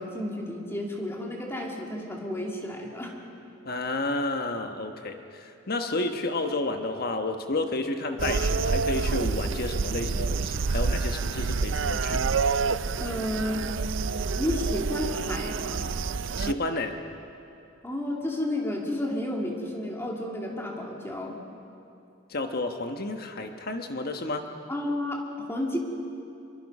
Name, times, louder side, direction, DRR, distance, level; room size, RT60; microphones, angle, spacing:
voice 1, 0.0-3.2 13.0-13.6 14.4-15.9 17.8-21.4 24.7-25.8, left 1 dB, 15° left, -1 dB, 2.6 m, -31 dB
voice 2, 3.6-12.2 16.4-17.0 22.3-24.4, left 2 dB, 50° left, 6 dB, 1.2 m, -31 dB
sound 1, 8.2-16.5, right 4 dB, 75° right, 0.5 m, -28 dB
25.5 x 23.0 x 5.5 m, 2.7 s
head